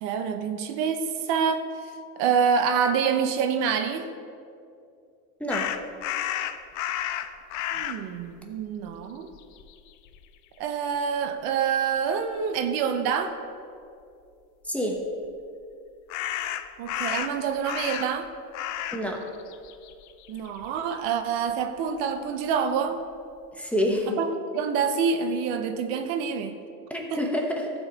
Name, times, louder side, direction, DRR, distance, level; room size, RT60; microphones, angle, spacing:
voice 1, 0.0-1.7 2.2-4.1 7.7-9.3 10.6-13.4 16.8-18.3 20.3-23.0 24.2-26.5 27.1-27.2, right 6 dB, 60° right, 8 dB, 0.8 m, -26 dB
voice 2, 5.4-5.7 14.6-15.0 18.9-19.2 23.5-24.2 26.9-27.7, equal, 5° left, 0 dB, 0.9 m, -27 dB
sound 1, 5.5-8.0 8.9-9.0 9.3-10.2 16.1-18.3 18.5-19.1 19.3-20.9, left 11 dB, 45° left, 0.5 m, -32 dB
14.0 x 4.8 x 4.0 m, 2.5 s
supercardioid pair, 125°, 44 cm